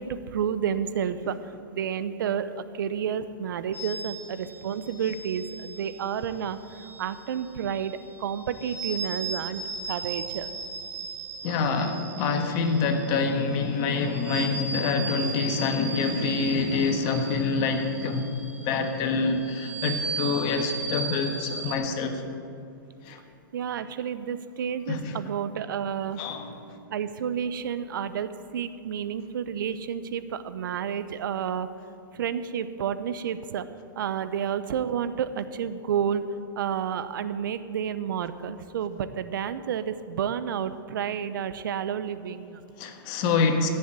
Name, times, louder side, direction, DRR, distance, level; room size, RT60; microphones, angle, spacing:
voice 1, 0.0-1.4 1.7-10.5 23.5-26.2 26.9-31.7 32.1-33.6 34.0-36.2 36.6-42.6, right 8 dB, 70° right, 12 dB, 0.7 m, -30 dB
sound 1, 3.7-21.7, right 3 dB, 20° right, 2.5 m, -37 dB
voice 2, 11.4-18.3 18.6-22.2 23.0-23.2 24.9-25.2 26.2-26.5 42.8-43.7, left 4 dB, 40° left, 6 dB, 1.4 m, -26 dB
15.0 x 7.1 x 8.8 m, 2.6 s
hypercardioid pair, 135°, 11 cm